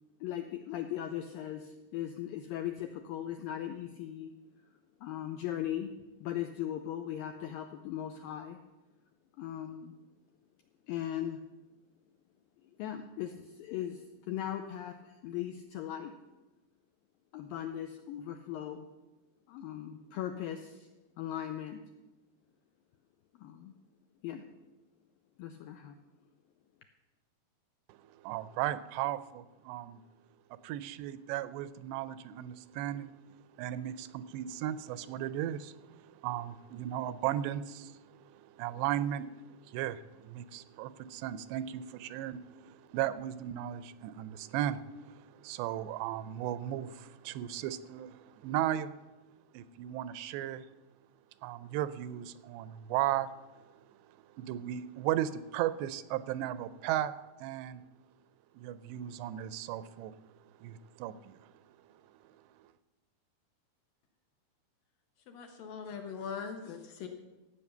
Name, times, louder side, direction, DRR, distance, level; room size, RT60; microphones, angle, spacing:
voice 1, 0.2-4.3 5.0-5.9 6.2-8.6 9.4-9.9 10.9-11.4 12.8-16.1 17.3-18.9 19.5-20.9 21.2-21.8 23.4-23.7 24.2-24.5 25.4-26.0, left 11 dB, 85° left, 6 dB, 2.0 m, -38 dB
voice 2, 27.9-30.0 30.6-33.1 33.6-39.3 39.6-48.9 49.5-50.6 51.4-53.3 54.3-57.1 57.4-57.8 58.6-60.1 60.6-61.4, right 12 dB, 85° right, 14 dB, 2.8 m, -36 dB
voice 3, 65.3-67.1, left 6 dB, 70° left, 4 dB, 2.4 m, -41 dB
14.5 x 8.5 x 6.7 m, 1.1 s
omnidirectional pair, 4.9 m